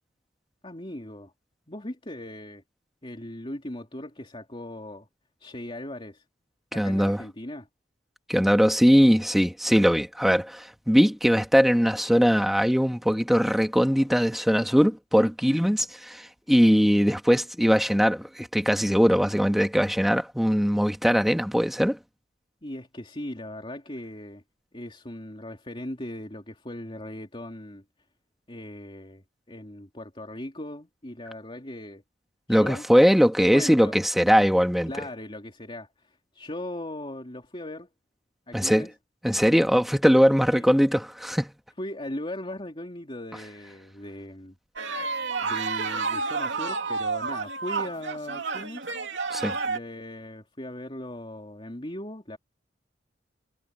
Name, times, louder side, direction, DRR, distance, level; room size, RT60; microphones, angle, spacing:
voice 1, 0.6-1.3 1.7-2.6 3.0-5.1 5.4-6.2 6.7-7.7 22.6-24.4 24.7-27.8 28.5-32.0 32.5-32.8 33.4-33.9 34.9-37.9 38.5-38.9 40.5-40.6 41.8-44.5 45.4-48.9 49.7-52.4, left 1 dB, 30° left, 3.2 m, -38 dB
voice 2, 6.7-7.2 8.3-22.0 32.5-34.9 38.5-38.9 39.2-41.5 49.3-49.5, equal, ahead, 1.6 m, -21 dB
sound 1, 44.8-49.8, right 4 dB, 85° right, 2.6 m, -30 dB
head